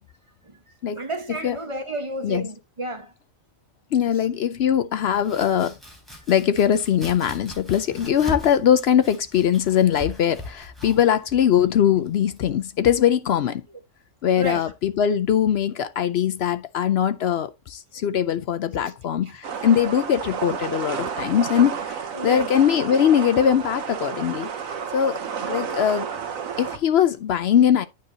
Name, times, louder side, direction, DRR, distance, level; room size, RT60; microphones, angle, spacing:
voice 1, 1.0-3.1 14.4-14.6 22.1-22.5, right 1 dB, 25° right, 1.3 m, -30 dB
voice 2, 3.9-5.8 6.3-13.6 14.2-24.5 24.9-26.1 26.6-27.9, left 9 dB, 65° left, 0.7 m, -21 dB
Domestic sounds home sounds, 5.0-12.7, left 1 dB, ahead, 3.5 m, -40 dB
sound 1, 19.4-26.8, right 7 dB, 80° right, 1.4 m, -31 dB
9.5 x 6.6 x 2.8 m
omnidirectional pair, 1.4 m